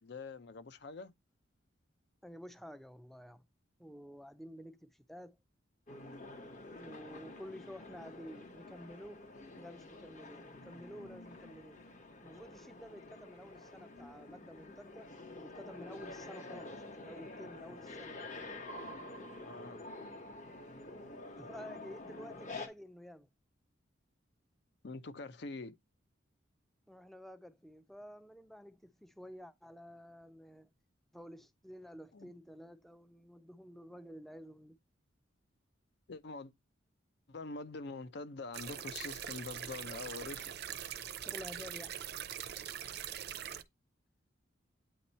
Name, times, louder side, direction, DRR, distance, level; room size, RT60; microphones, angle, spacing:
voice 1, 0.0-1.1 16.5-16.8 19.4-19.8 20.6-20.7 24.8-25.8 32.1-32.3 36.1-36.5 37.3-40.5, left 3 dB, 55° left, 0.5 m, -45 dB
voice 2, 2.2-3.4 3.8-5.4 6.8-9.2 9.6-11.8 12.2-18.2 21.4-23.3 26.9-30.7 31.1-34.8 41.2-41.9, equal, ahead, 0.4 m, -51 dB
sound 1, 5.9-22.7, left 2 dB, 40° left, 1.1 m, -48 dB
sound 2, 38.5-43.6, right 10 dB, 55° right, 0.5 m, -42 dB
8.8 x 3.0 x 4.1 m
head